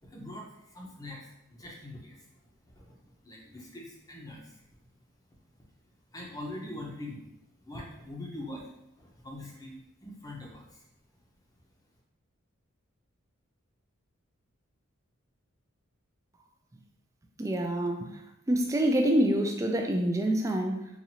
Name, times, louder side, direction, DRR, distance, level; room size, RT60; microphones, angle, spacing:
voice 1, 0.0-1.2 1.5-2.2 2.6-3.0 3.2-4.6 6.1-7.2 7.6-8.6 9.0-9.7 10.0-10.8, left 1 dB, 15° left, -2 dB, 0.7 m, -43 dB
voice 2, 17.4-18.1 18.5-20.9, right 1 dB, 15° right, 3 dB, 0.3 m, -26 dB
4.1 x 2.5 x 2.8 m, 0.86 s
head